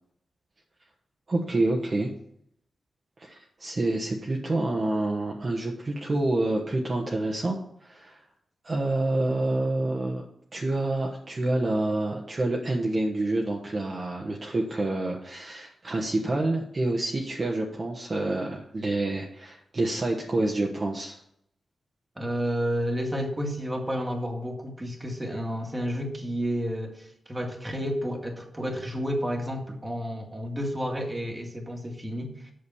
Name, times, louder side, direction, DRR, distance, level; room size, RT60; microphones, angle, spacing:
voice 1, 1.3-2.1 3.2-8.2 8.6-10.2 10.5-21.2, right 2 dB, 35° right, -1 dB, 1.3 m, -28 dB
voice 2, 22.2-32.5, equal, 15° right, 2 dB, 2.0 m, -31 dB
8.4 x 6.4 x 7.1 m, 0.72 s
wide cardioid pair, 100°, 0 cm